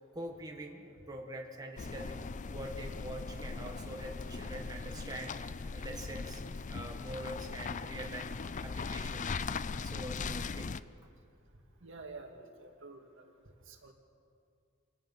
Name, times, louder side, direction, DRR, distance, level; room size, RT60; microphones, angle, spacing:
voice 1, 0.1-2.2 2.5-6.4 6.7-8.3 8.6-9.4 9.8-10.9, right 1 dB, 20° right, 1 dB, 1.7 m, -44 dB
sound 1, 1.8-10.8, left 4 dB, 35° left, 0.5 m, -39 dB
voice 2, 11.8-13.3 13.7-13.9, right 3 dB, 65° right, 3 dB, 2.1 m, -49 dB
27.5 x 17.0 x 5.5 m, 2.4 s
head